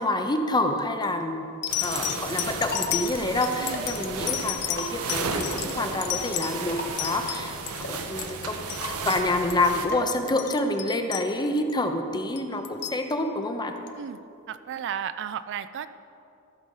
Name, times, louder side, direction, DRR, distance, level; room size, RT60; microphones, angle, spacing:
voice 1, 0.0-1.5 1.8-8.7 9.0-13.7, left 2 dB, 20° left, 6 dB, 0.7 m, -27 dB
sound 1, 0.7-1.4 2.1-10.9, left 2 dB, 45° left, 1.3 m, -39 dB
sound 2, 0.8-1.1 1.6-7.8 8.1-8.8 9.1-9.2 9.5-9.7 10.1-11.7 12.4-13.0 13.9-14.0, left 13 dB, 80° left, 0.7 m, -32 dB
sound 3, 1.7-9.9, right 4 dB, 75° right, 0.9 m, -34 dB
voice 2, 3.6-3.9 14.0-14.2 14.5-15.9, right 8 dB, 55° right, 13 dB, 0.3 m, -34 dB
14.0 x 6.4 x 5.5 m, 2.6 s
head